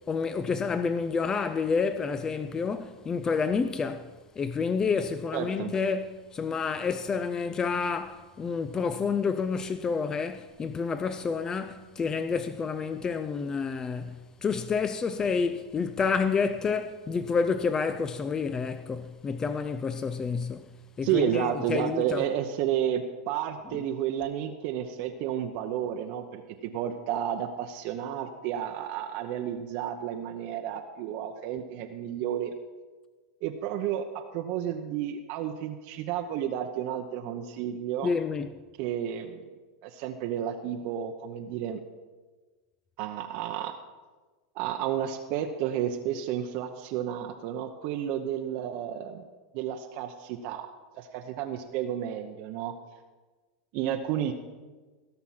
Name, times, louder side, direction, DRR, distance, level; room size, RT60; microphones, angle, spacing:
voice 1, 0.1-20.7 21.0-22.2 23.7-23.8 38.0-38.5, left 5 dB, 20° left, 0.5 m, -29 dB
voice 2, 5.3-5.7 21.0-32.5 33.4-34.0 34.3-38.1 38.8-39.4 39.8-41.8 43.0-43.7 44.5-49.2 49.5-50.7 50.9-52.7 53.7-54.3, right 10 dB, 55° right, 0.8 m, -31 dB
17.0 x 5.9 x 5.8 m
supercardioid pair, 115°, 3 cm